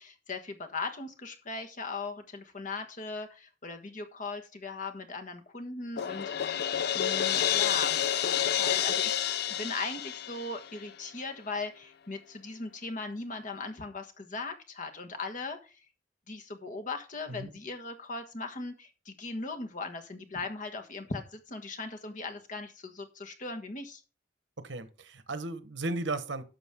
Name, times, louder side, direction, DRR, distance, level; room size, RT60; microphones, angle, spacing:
voice 1, 0.0-6.5 6.9-15.8 16.3-24.0, left 3 dB, 45° left, 1.4 m, -39 dB
Crash cymbal, 6.0-10.9, left 10 dB, 60° left, 0.5 m, -29 dB
voice 2, 24.6-26.4, right 2 dB, 80° right, 1.2 m, -35 dB
11.0 x 6.7 x 3.7 m
head